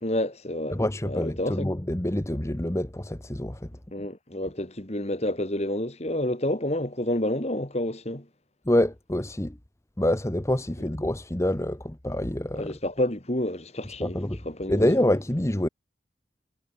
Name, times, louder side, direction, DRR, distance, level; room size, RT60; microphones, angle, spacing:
voice 1, 0.0-1.7 3.9-8.3 10.8-10.9 12.5-14.2 14.4-14.9, left 1 dB, 40° left, 3.3 m, -29 dB
voice 2, 0.7-3.7 8.7-9.6 10.0-12.7 14.0-14.4 14.7-15.7, left 1 dB, 15° left, 1.0 m, -26 dB
head